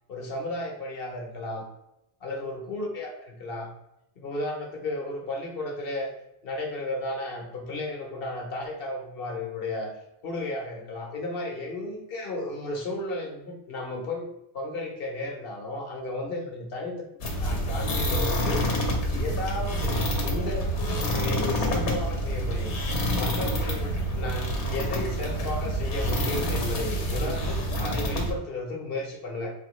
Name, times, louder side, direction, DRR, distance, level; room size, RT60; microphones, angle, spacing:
voice 1, 0.1-1.6 2.2-3.7 4.2-6.1 6.4-9.9 10.2-14.3 14.5-17.0 17.4-18.6 19.1-22.7 23.1-29.5, left 2 dB, 60° left, 1 dB, 1.1 m, -34 dB
sound 1, 17.2-28.3, equal, 85° left, 1.1 m, -27 dB
4.3 x 2.9 x 3.1 m, 0.85 s
omnidirectional pair, 1.1 m